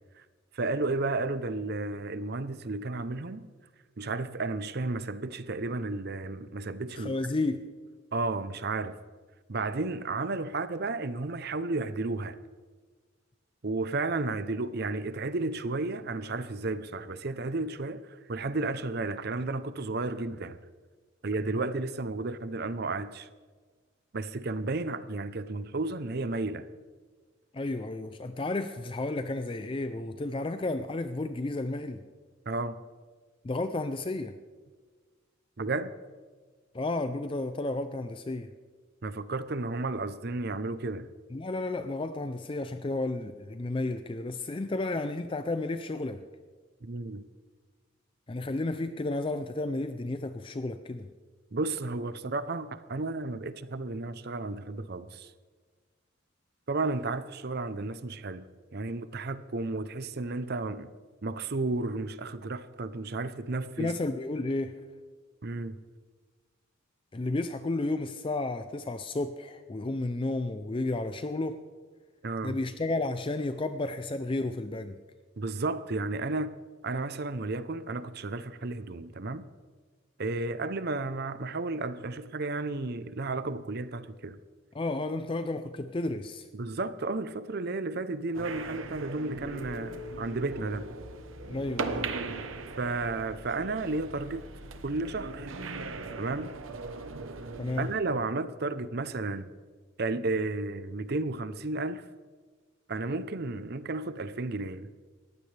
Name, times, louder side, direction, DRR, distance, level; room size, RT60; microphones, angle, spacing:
voice 1, 0.5-3.5 4.0-7.2 8.1-9.0 9.5-12.4 13.6-20.6 21.2-23.3 24.1-26.6 32.5-32.8 35.6-35.9 39.0-41.1 46.8-47.3 51.5-55.3 56.7-58.4 58.7-60.9 61.2-63.9 65.4-65.8 72.2-72.6 75.4-76.5 76.8-79.4 80.2-84.4 86.5-90.8 92.8-94.4 94.8-95.6 96.2-96.5 97.8-99.5 100.0-102.1 102.9-104.9, right 3 dB, 50° right, 0.6 m, -33 dB
voice 2, 6.9-7.7 27.5-32.0 33.4-34.4 36.7-38.5 41.3-46.2 48.3-51.1 63.8-64.8 67.1-71.6 72.4-75.0 84.7-86.5 91.5-92.1 97.6-97.9, left 2 dB, 25° left, 0.4 m, -32 dB
sound 1, 88.3-98.0, right 3 dB, 75° right, 1.0 m, -39 dB
Guitar, 89.4-93.4, left 2 dB, 45° left, 1.8 m, -47 dB
20.0 x 15.0 x 3.3 m
head